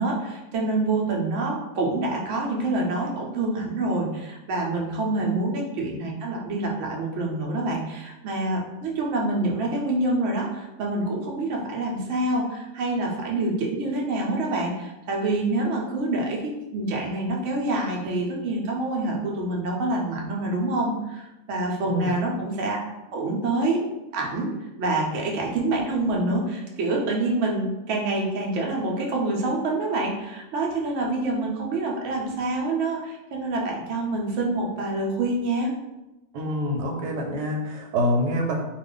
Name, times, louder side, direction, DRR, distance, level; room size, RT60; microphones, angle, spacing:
voice 1, 0.0-22.8 23.1-23.8 24.1-24.5 24.8-35.7, right 2 dB, 65° right, -1 dB, 0.8 m, -26 dB
voice 2, 36.3-38.5, equal, 90° right, 2 dB, 1.2 m, -26 dB
2.4 x 2.3 x 3.7 m, 0.98 s
omnidirectional pair, 1.7 m